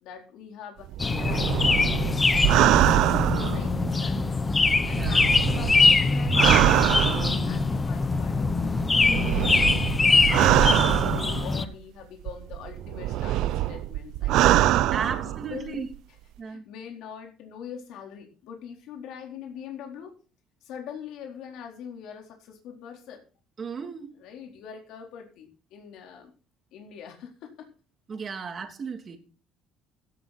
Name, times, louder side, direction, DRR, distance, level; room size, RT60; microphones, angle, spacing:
voice 1, 0.0-4.3 4.7-7.1 7.4-14.6 15.0-15.9 16.4-20.1 20.6-23.2 24.2-26.3 26.7-27.7 28.2-28.4, left 8 dB, 75° left, 2 dB, 4.0 m, -43 dB
sound 1, 0.9-4.2 4.7-7.6 8.5-11.7 12.3-15.7 15.9-16.0, right 14 dB, 75° right, 0.8 m, -24 dB
sound 2, 1.0-11.7, left 3 dB, 20° left, 1.1 m, -23 dB
voice 2, 4.8-5.2 14.9-15.9 16.4-16.6 23.6-24.1 28.1-29.2, right 6 dB, 30° right, 6 dB, 2.8 m, -35 dB
16.0 x 11.0 x 4.3 m, 0.36 s
cardioid pair, 135°, 0 cm